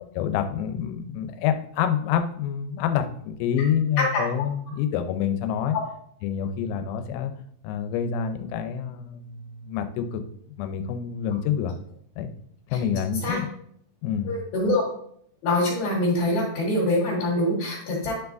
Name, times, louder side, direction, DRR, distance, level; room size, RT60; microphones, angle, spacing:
voice 1, 0.2-5.8 6.2-7.3 7.6-10.2 10.5-11.7 12.2-12.3 12.7-13.5 14.0-14.4, left 8 dB, 90° left, 7 dB, 3.4 m, -27 dB
voice 2, 14.3-14.8 15.4-18.1, left 1 dB, 55° left, -7 dB, 3.4 m, -24 dB
11.5 x 4.7 x 2.5 m, 0.66 s
omnidirectional pair, 5.9 m